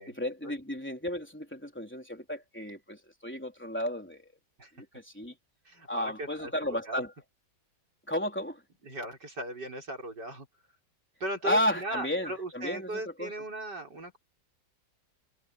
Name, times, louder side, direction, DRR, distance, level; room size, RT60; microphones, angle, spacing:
voice 1, 0.1-4.3 4.8-5.4 5.9-7.1 8.1-8.6 11.4-13.3, left 1 dB, 5° left, 3.6 m, -33 dB
voice 2, 5.7-6.5 6.9-7.0 8.8-10.5 11.2-14.2, right 1 dB, 70° right, 6.8 m, -37 dB
omnidirectional pair, 1.9 m